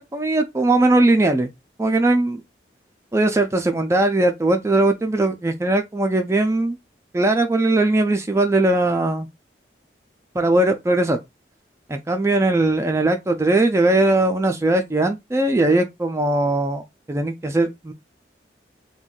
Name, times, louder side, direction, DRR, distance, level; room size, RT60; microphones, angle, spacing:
voice 1, 0.1-1.5 1.8-2.4 3.1-6.8 7.1-9.3 10.3-11.2 11.9-16.8 17.1-17.9, right 2 dB, 15° right, 0.3 m, -19 dB
2.5 x 2.2 x 3.7 m
head